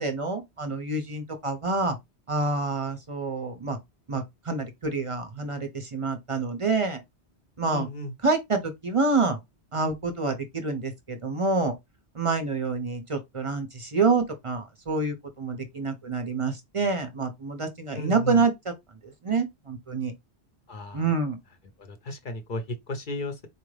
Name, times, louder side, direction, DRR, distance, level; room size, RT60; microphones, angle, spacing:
voice 1, 0.0-2.0 2.3-3.8 4.1-7.0 7.6-7.9 8.2-9.4 9.7-11.7 12.1-18.5 19.0-20.1 20.9-21.4, right 3 dB, 35° right, 0.6 m, -27 dB
voice 2, 7.7-8.1 17.9-18.4 20.7-21.0 21.8-23.5, left 1 dB, 50° left, 0.9 m, -34 dB
4.3 x 2.5 x 3.1 m
omnidirectional pair, 1.1 m